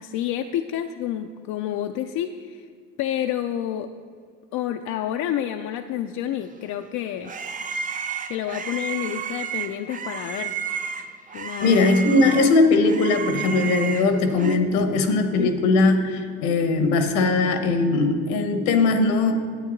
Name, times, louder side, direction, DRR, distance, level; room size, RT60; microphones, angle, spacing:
voice 1, 0.0-2.7 3.0-3.9 4.5-7.3 8.3-10.5 11.3-11.8 15.4-15.5, left 11 dB, 65° left, 6 dB, 0.5 m, -29 dB
sound 1, 6.6-14.6, right 6 dB, 25° right, 0.5 m, -32 dB
voice 2, 11.6-19.3, left 3 dB, 85° left, 7 dB, 1.1 m, -20 dB
10.0 x 8.5 x 3.9 m, 2.1 s
supercardioid pair, 85°, 31 cm